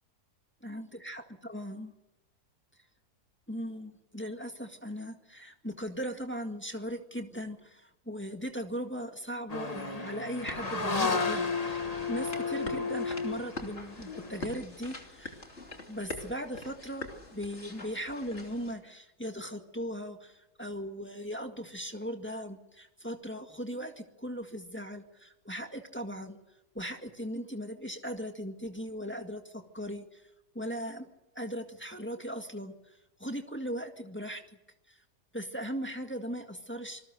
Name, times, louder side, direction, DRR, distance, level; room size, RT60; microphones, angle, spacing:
voice 1, 0.6-1.2 1.5-1.9 3.5-15.4 15.9-26.4 26.7-30.2 30.5-31.1 31.4-32.7 33.2-34.4 34.9-35.0 35.3-37.0, equal, 5° left, 4 dB, 1.8 m, -38 dB
sound 1, 9.5-14.5, left 4 dB, 25° left, 1.6 m, -33 dB
sound 2, 10.4-18.7, left 2 dB, 45° left, 3.2 m, -44 dB
27.0 x 20.0 x 6.7 m, 0.91 s
omnidirectional pair, 1.7 m